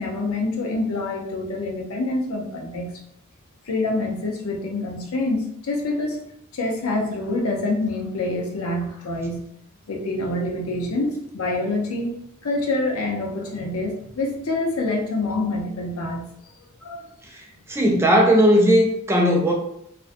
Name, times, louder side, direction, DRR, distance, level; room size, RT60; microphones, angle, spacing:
voice 1, 0.0-3.0 3.7-6.2 6.5-9.5 9.9-12.2 12.4-16.3 16.8-17.1, left 2 dB, 85° left, 1 dB, 0.6 m, -26 dB
voice 2, 17.7-19.5, equal, 10° right, 0 dB, 0.3 m, -17 dB
2.4 x 2.1 x 2.4 m, 0.72 s
head